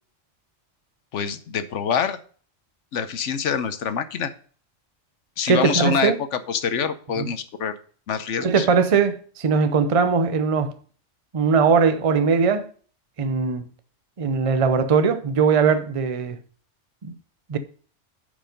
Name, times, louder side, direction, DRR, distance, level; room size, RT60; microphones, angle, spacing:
voice 1, 1.1-2.2 2.9-4.3 5.4-7.8 8.1-8.7, left 7 dB, 80° left, 1.1 m, -26 dB
voice 2, 5.5-6.2 7.2-7.3 8.4-10.7 11.3-12.7 13.2-13.6 14.2-16.4 17.0-17.1 17.5-17.6, right 5 dB, 35° right, 0.7 m, -20 dB
9.0 x 5.1 x 5.2 m
omnidirectional pair, 1.2 m